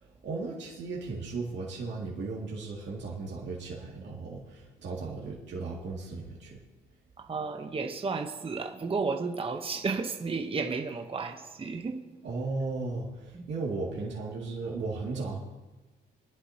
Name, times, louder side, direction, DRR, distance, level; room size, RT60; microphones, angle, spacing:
voice 1, 0.0-6.6 12.2-15.4, right 3 dB, 65° right, 2.3 m, -36 dB
voice 2, 7.2-12.1 13.3-13.5, right 4 dB, 30° right, 1.0 m, -33 dB
22.5 x 11.0 x 2.9 m
cardioid pair, 90°, 20 cm